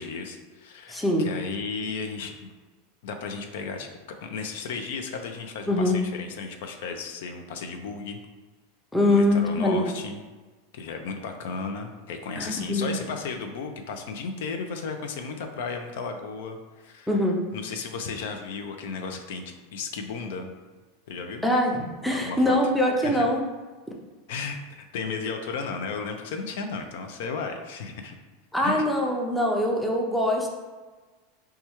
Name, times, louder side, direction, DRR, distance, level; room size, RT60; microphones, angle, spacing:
voice 1, 0.0-2.5 3.0-8.2 9.1-10.2 10.7-17.1 17.5-20.5 21.1-21.5 22.1-22.6 23.0-23.2 24.3-28.1 28.6-28.8, left 4 dB, 75° left, 5 dB, 0.4 m, -34 dB
voice 2, 0.9-1.3 5.7-6.0 8.9-9.8 12.4-12.9 17.1-17.4 21.4-23.4 28.5-30.5, left 1 dB, 5° left, -1 dB, 0.5 m, -23 dB
4.3 x 2.3 x 2.9 m, 1.3 s
supercardioid pair, 130°, 0 cm